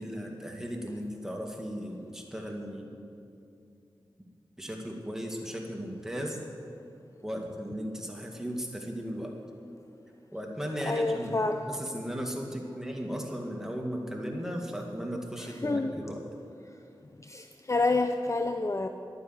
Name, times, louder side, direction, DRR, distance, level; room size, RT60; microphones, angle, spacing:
voice 1, 0.0-3.0 4.6-6.4 7.2-9.4 10.3-11.4 11.7-16.3, equal, 5° right, 1 dB, 2.2 m, -36 dB
voice 2, 10.8-11.6 15.4-15.9 17.3-18.9, left 3 dB, 35° left, 6 dB, 0.6 m, -28 dB
11.0 x 9.6 x 8.0 m, 2.5 s
cardioid pair, 45°, 9 cm